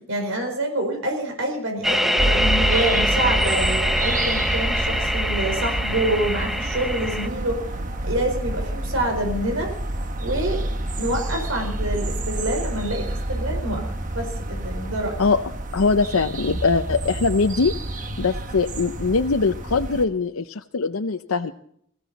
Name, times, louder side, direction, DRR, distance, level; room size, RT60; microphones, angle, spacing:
voice 1, 0.1-7.6 8.0-9.7 10.2-10.6 11.0-15.2, right 1 dB, 75° right, 4 dB, 4.6 m, -27 dB
sound 1, 1.8-7.3, equal, ahead, 0.8 m, -24 dB
sound 2, 2.2-20.1, right 1 dB, 40° right, 1.3 m, -28 dB
voice 2, 15.7-21.5, left 4 dB, 90° left, 7 dB, 0.7 m, -22 dB
22.5 x 15.0 x 4.1 m, 0.66 s
head